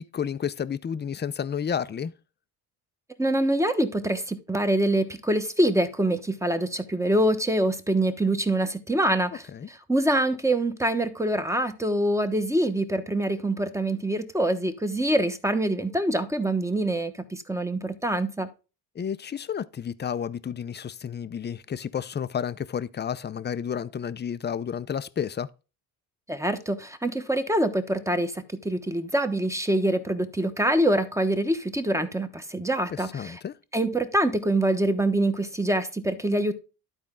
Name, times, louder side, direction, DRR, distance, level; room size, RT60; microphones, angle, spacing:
voice 1, 0.0-2.1 9.5-9.7 19.0-25.5 32.9-33.5, left 8 dB, 25° left, 0.5 m, -31 dB
voice 2, 3.2-18.5 26.3-33.3 33.7-36.5, right 1 dB, 5° right, 1.0 m, -25 dB
12.0 x 4.4 x 3.7 m
cardioid pair, 95°, 41 cm